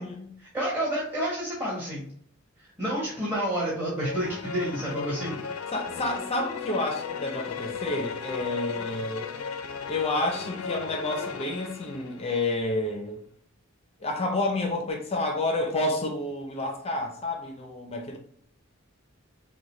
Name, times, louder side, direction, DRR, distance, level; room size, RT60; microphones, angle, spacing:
voice 1, 0.4-2.0 2.8-5.4, right 1 dB, 10° right, 1.2 m, -29 dB
sound 1, 4.0-12.6, left 5 dB, 80° left, 0.5 m, -36 dB
voice 2, 5.7-9.3 9.9-13.2 14.0-18.2, left 2 dB, 30° left, 0.5 m, -29 dB
6.3 x 2.2 x 3.1 m
head